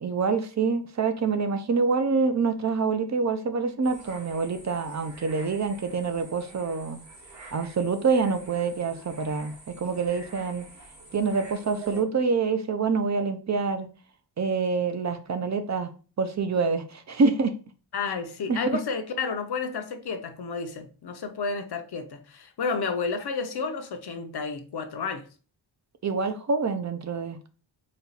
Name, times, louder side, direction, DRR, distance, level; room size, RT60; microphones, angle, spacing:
voice 1, 0.0-7.0 7.5-10.7 11.1-13.9 14.4-15.9 16.2-17.5 18.5-18.6 26.0-27.4, right 4 dB, 40° right, 0.5 m, -26 dB
sound 1, 3.8-12.0, right 2 dB, 80° right, 2.1 m, -47 dB
voice 2, 17.9-25.2, left 5 dB, 60° left, 0.7 m, -31 dB
4.2 x 2.4 x 3.9 m
wide cardioid pair, 145°, 45 cm